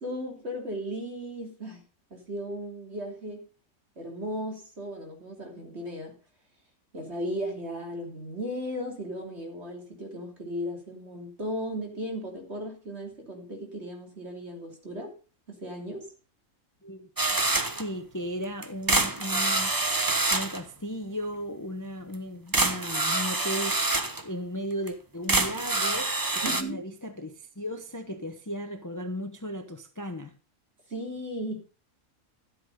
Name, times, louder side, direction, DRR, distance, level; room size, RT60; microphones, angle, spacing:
voice 1, 0.0-1.8 2.1-3.4 4.0-6.2 6.9-15.1 15.5-16.1 26.4-26.8 30.9-31.6, equal, 50° right, 3.4 m, -36 dB
sound 1, 17.2-17.9 18.6-20.6 22.1-22.2 22.5-24.2 24.9-25.0 25.3-26.6, right 2 dB, 15° right, 0.8 m, -26 dB
voice 2, 17.8-19.7 20.3-24.0 24.2-30.4, equal, 15° left, 0.9 m, -36 dB
12.5 x 8.4 x 5.4 m
omnidirectional pair, 1.5 m